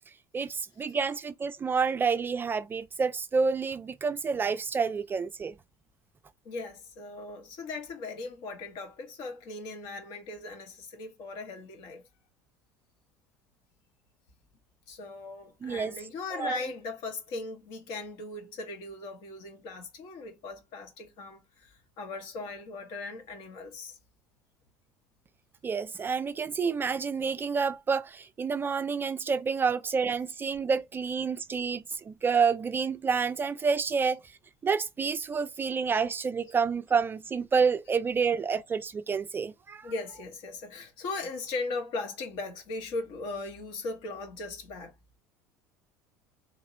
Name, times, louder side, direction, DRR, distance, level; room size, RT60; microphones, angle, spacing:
voice 1, 0.3-5.5 15.6-15.9 16.3-16.6 25.6-34.2 34.6-39.9, right 5 dB, 25° right, 0.3 m, -29 dB
voice 2, 6.4-12.0 14.9-24.0 35.3-35.4 39.8-44.9, left 3 dB, 60° left, 1.4 m, -38 dB
3.5 x 2.9 x 2.8 m
hypercardioid pair, 75°, 8 cm